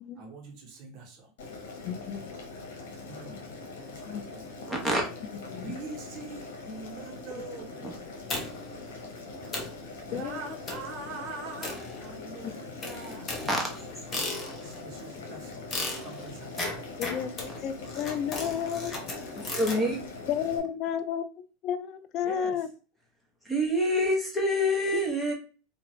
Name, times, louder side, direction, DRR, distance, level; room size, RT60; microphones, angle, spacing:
voice 1, 0.1-1.3 3.1-3.4 3.7-4.5 5.5-7.9 10.1-13.3 14.1-15.7 16.0-16.7 19.5-19.9 22.2-22.6, right 3 dB, 50° right, 1.1 m, -43 dB
Boiling, 1.4-20.6, left 3 dB, 80° left, 1.0 m, -42 dB
voice 2, 1.8-2.3 4.0-4.2 5.5-5.7 10.1-10.4 12.4-12.5 17.0-19.0 20.3-22.7 24.9-25.0, left 8 dB, 50° left, 0.4 m, -32 dB
voice 3, 4.7-5.0 13.5-13.8 19.4-20.0 23.4-25.3, equal, ahead, 1.1 m, -26 dB
sound 1, 8.3-8.8 9.2-9.3 9.5-9.8 10.7-11.0 11.6-12.3 12.8-14.8 15.7-19.8, left 2 dB, 25° left, 1.0 m, -36 dB
2.8 x 2.6 x 3.1 m
supercardioid pair, 115°, 0 cm